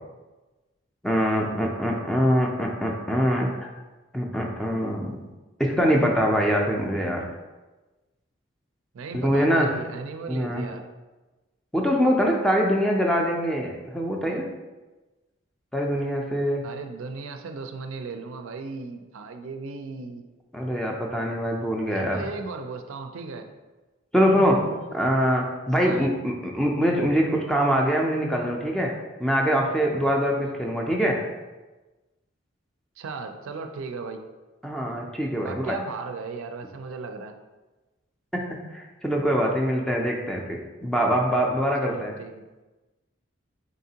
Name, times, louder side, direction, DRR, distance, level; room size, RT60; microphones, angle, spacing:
voice 1, 1.0-3.7 4.1-5.3 5.6-7.2 9.2-9.7 10.3-10.6 11.7-14.5 15.7-16.6 20.5-22.2 24.1-24.6 24.9-28.9 29.2-31.2 34.6-35.8 38.3-42.1, equal, 5° left, -1 dB, 0.4 m, -24 dB
voice 2, 8.9-10.8 16.6-20.2 21.9-23.5 24.3-24.9 25.8-26.1 33.0-34.2 35.4-37.3 41.8-42.4, right 4 dB, 90° right, 6 dB, 0.4 m, -36 dB
3.9 x 3.6 x 2.8 m, 1.2 s
head